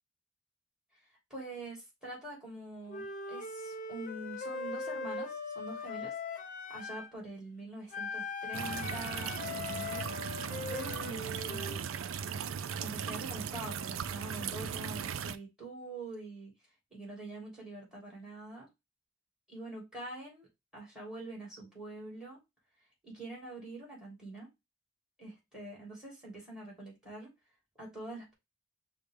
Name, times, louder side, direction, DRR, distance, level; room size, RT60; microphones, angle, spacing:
voice 1, 1.3-6.1 6.7-10.4 10.7-11.8 12.8-16.5 16.9-18.7 19.5-20.5 20.7-22.4 23.0-24.5 25.2-27.3 27.8-28.3, right 2 dB, 5° right, 2.8 m, -45 dB
Wind instrument woodwind instrument, 2.9-7.1 7.9-11.8, left 4 dB, 40° left, 0.7 m, -40 dB
sound 1, 8.5-15.4, right 7 dB, 80° right, 0.4 m, -38 dB
6.2 x 2.3 x 3.4 m
head